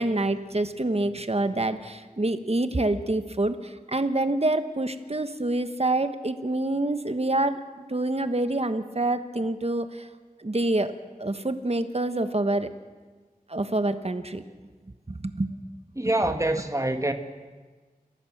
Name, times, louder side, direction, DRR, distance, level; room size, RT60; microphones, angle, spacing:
voice 1, 0.0-7.6 7.9-10.1 10.4-10.9 11.2-12.7 13.5-14.4 15.1-15.5, right 2 dB, 40° right, 1.3 m, -26 dB
voice 2, 15.9-17.1, right 1 dB, 20° right, 1.7 m, -25 dB
29.0 x 14.0 x 7.4 m
wide cardioid pair, 45°, 16 cm